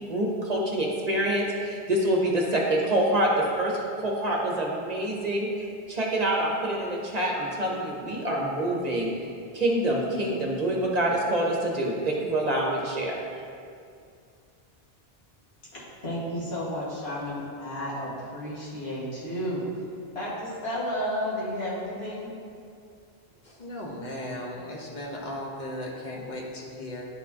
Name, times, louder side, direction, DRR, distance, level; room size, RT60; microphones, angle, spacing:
voice 1, 0.1-9.1 9.5-13.2, right 1 dB, 45° right, -2 dB, 0.9 m, -26 dB
voice 2, 15.7-19.7 20.1-22.3, equal, 80° left, -8 dB, 2.1 m, -32 dB
voice 3, 23.4-27.1, left 1 dB, 45° left, -2 dB, 1.1 m, -36 dB
11.0 x 4.3 x 2.8 m, 2.3 s
omnidirectional pair, 1.1 m